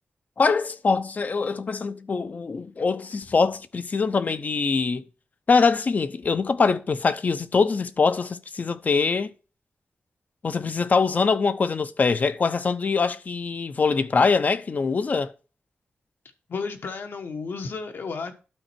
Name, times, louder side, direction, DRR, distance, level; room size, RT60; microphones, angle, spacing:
voice 1, 0.4-5.0 5.5-9.3 10.4-15.3, left 4 dB, 45° left, 0.5 m, -23 dB
voice 2, 16.5-18.3, left 4 dB, 65° left, 1.2 m, -32 dB
11.5 x 4.2 x 4.5 m
wide cardioid pair, 135°, 4 cm